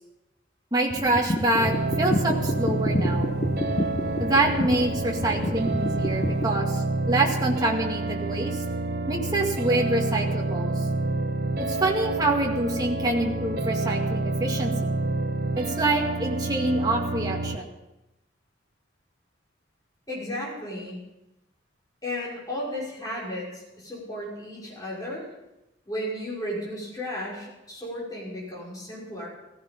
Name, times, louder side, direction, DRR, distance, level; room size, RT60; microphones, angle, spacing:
voice 1, 0.7-3.3 4.2-8.6 9.1-10.8 11.6-14.9 15.6-17.6, right 2 dB, 20° right, 0 dB, 2.1 m, -26 dB
sound 1, 0.9-6.4, left 1 dB, 35° left, 0.9 m, -30 dB
sound 2, 1.6-17.6, right 2 dB, 50° right, 1.0 m, -28 dB
voice 2, 20.1-21.0 22.0-25.3 25.9-29.3, left 1 dB, 20° left, -5 dB, 5.9 m, -34 dB
15.5 x 15.0 x 5.4 m, 0.95 s
head